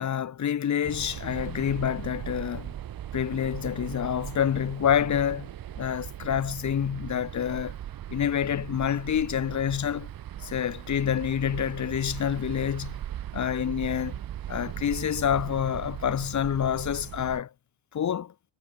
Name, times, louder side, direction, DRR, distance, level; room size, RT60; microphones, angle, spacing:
voice 1, 0.0-2.7 3.1-5.5 5.8-7.8 8.1-10.1 10.4-13.0 13.3-14.2 14.5-17.5 17.9-18.3, left 9 dB, 35° left, 2.9 m, -27 dB
sound 1, 0.8-17.4, right 11 dB, 45° right, 3.7 m, -38 dB
cardioid pair, 135°, 48 cm